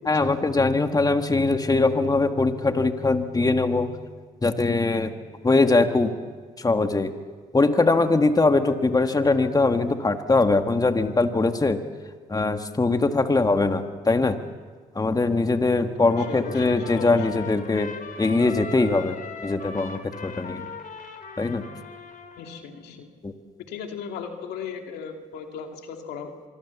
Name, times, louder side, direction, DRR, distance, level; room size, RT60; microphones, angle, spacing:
voice 1, 0.1-3.9 4.4-5.1 5.4-6.1 6.6-7.1 7.5-11.8 12.3-14.4 15.0-17.9 18.2-19.2 19.4-20.7 21.4-21.6 23.2-23.3, left 3 dB, 20° left, 7 dB, 1.7 m, -21 dB
voice 2, 16.0-17.4 22.4-23.1 23.7-26.3, left 6 dB, 85° left, 4 dB, 2.6 m, -37 dB
Trumpet, 16.0-22.6, left 4 dB, 55° left, 3.7 m, -40 dB
25.0 x 22.5 x 7.2 m, 1.5 s
supercardioid pair, 60°, 17 cm